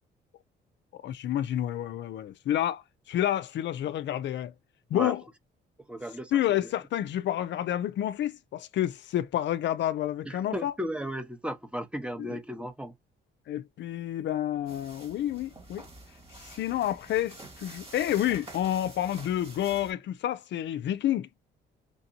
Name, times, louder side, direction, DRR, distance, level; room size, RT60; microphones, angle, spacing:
voice 1, 0.9-4.5 4.9-5.2 6.3-10.7 12.2-12.4 13.5-15.8 16.4-21.3, left 12 dB, 65° left, 0.4 m, -29 dB
voice 2, 5.9-6.6 10.2-12.9, equal, 5° right, 0.9 m, -35 dB
sound 1, 14.7-19.9, right 2 dB, 30° right, 1.8 m, -48 dB
4.9 x 2.6 x 2.7 m
cardioid pair, 90°, 20 cm